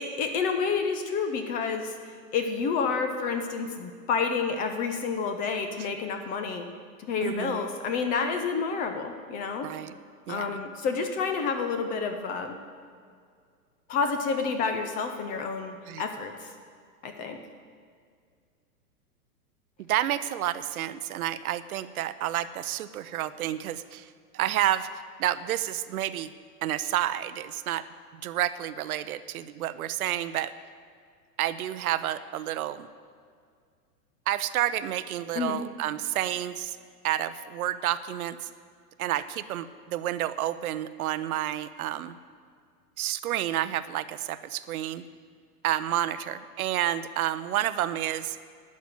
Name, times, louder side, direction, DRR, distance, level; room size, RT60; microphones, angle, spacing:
voice 1, 0.0-6.7 7.0-9.7 10.3-12.6 13.9-16.5 17.0-17.4 35.3-35.6, left 5 dB, 20° left, 7 dB, 0.5 m, -29 dB
voice 2, 7.2-7.6 9.6-9.9 10.3-10.6 15.9-16.0 19.8-24.9 25.2-26.3 26.6-27.8 28.2-30.5 31.4-32.9 34.3-36.8 37.0-38.5 39.0-42.2 43.0-45.0 45.6-48.4, right 12 dB, 65° right, 14 dB, 0.7 m, -30 dB
11.5 x 5.9 x 9.1 m, 2.1 s
hypercardioid pair, 130°, 47 cm